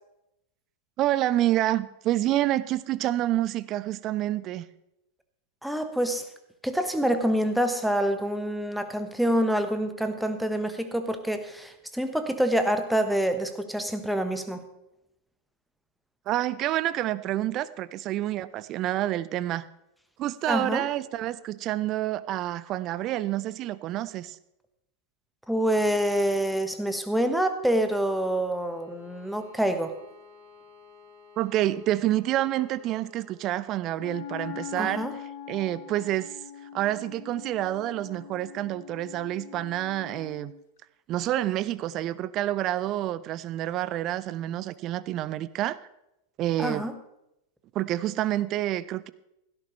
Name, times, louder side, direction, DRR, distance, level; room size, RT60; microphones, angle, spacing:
voice 1, 1.0-4.7 16.3-19.6 20.2-24.4 31.4-35.1 35.5-36.4 36.7-40.5 41.1-45.8 46.4-46.9 47.7-49.1, right 14 dB, 35° right, 18 dB, 0.5 m, -28 dB
voice 2, 5.6-6.2 6.6-14.6 20.5-20.9 25.5-29.9 34.8-35.1 46.6-46.9, right 1 dB, ahead, 8 dB, 1.2 m, -26 dB
Bowed string instrument, 28.5-33.4, left 5 dB, 85° left, 6.3 m, -54 dB
Wind instrument woodwind instrument, 33.9-40.6, left 9 dB, 55° left, 0.9 m, -42 dB
16.5 x 13.0 x 3.2 m, 0.85 s
figure-of-eight pair, 90°, 0 cm